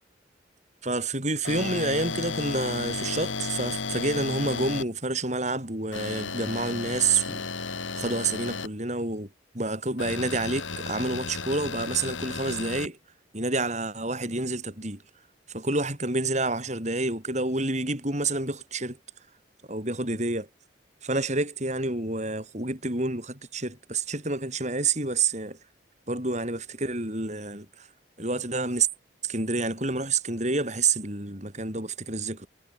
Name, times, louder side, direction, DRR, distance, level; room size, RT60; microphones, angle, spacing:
voice 1, 0.8-9.3 9.5-13.0 13.3-15.0 15.5-19.0 19.7-20.5 21.0-25.6 26.1-27.9 28.2-28.9 29.2-32.5, right 3 dB, 35° right, 6.5 m, -28 dB
sound 1, 1.4-4.8 5.9-8.7 10.0-12.9, left 4 dB, 90° left, 3.6 m, -33 dB
head